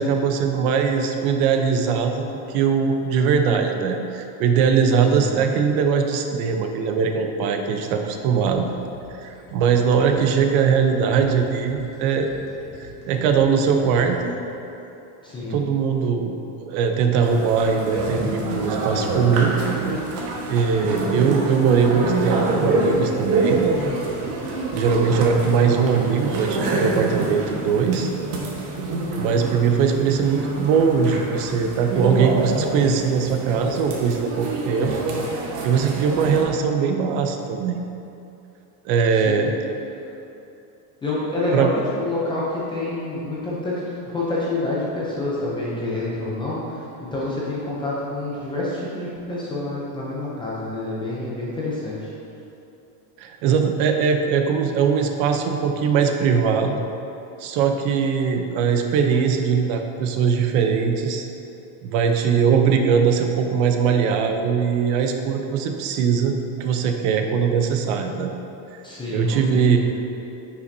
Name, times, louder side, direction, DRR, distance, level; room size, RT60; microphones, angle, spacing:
voice 1, 0.0-8.7 9.1-12.3 12.8-14.3 15.4-19.5 20.5-23.6 24.7-28.1 29.1-34.9 35.6-37.8 38.8-39.5 41.5-41.7 53.2-56.8 57.4-61.3 61.8-68.3 69.1-69.8, right 6 dB, 60° right, 5 dB, 0.7 m, -21 dB
sound 1, 8.1-14.7, left 3 dB, 35° left, 1.2 m, -47 dB
voice 2, 15.2-15.6 39.2-39.5 41.0-41.7 42.0-52.1 68.8-69.4 69.6-69.8, left 2 dB, 10° left, -7 dB, 0.4 m, -28 dB
sound 2, 17.2-36.4, right 2 dB, 80° right, 1.4 m, -26 dB
9.6 x 5.8 x 2.7 m, 2.8 s
cardioid pair, 175°, 47 cm